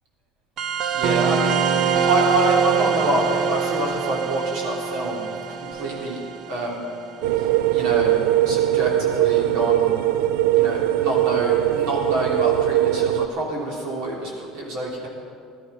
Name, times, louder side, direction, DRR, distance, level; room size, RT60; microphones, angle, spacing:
sound 1, 0.6-7.7, right 6 dB, 40° right, 0.7 m, -24 dB
voice 1, 0.9-1.6 2.0-5.2 5.7-6.2 6.5-6.8 7.4-7.5 7.7-8.2 8.4-9.9 10.5-15.1, right 1 dB, 55° right, -2 dB, 3.3 m, -26 dB
sound 2, 7.2-13.3, right 13 dB, 85° right, 0.5 m, -20 dB
17.5 x 12.5 x 5.6 m, 2.3 s
cardioid pair, 175°, 0 cm